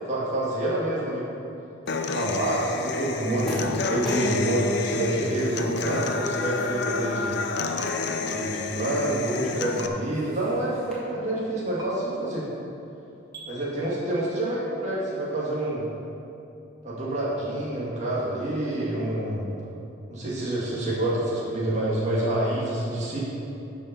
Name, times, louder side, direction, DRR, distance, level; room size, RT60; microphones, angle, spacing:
voice 1, 0.1-1.3 2.1-7.4 8.3-12.5 13.5-15.9 16.8-19.5 20.1-23.2, right 1 dB, 35° right, -7 dB, 2.1 m, -27 dB
Human voice / Acoustic guitar, 1.9-9.9, left 4 dB, 55° left, 0.7 m, -29 dB
sound 1, 1.9-10.9, equal, 5° left, 2.2 m, -42 dB
sound 2, 7.8-7.9 9.8-9.9 11.8-11.9 13.3-13.5, right 1 dB, 20° right, 1.9 m, -39 dB
12.0 x 5.5 x 5.9 m, 2.8 s
head